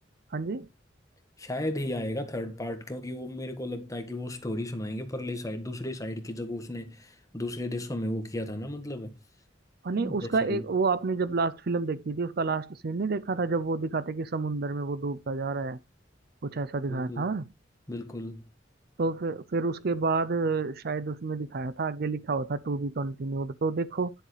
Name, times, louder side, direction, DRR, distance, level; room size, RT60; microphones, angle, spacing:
voice 1, 0.3-0.7 9.8-15.8 16.4-17.5 19.0-24.1, right 3 dB, 55° right, 0.6 m, -29 dB
voice 2, 1.4-9.1 9.9-10.6 16.9-17.3 17.9-18.4, left 1 dB, 20° left, 1.6 m, -34 dB
11.0 x 7.0 x 3.3 m
head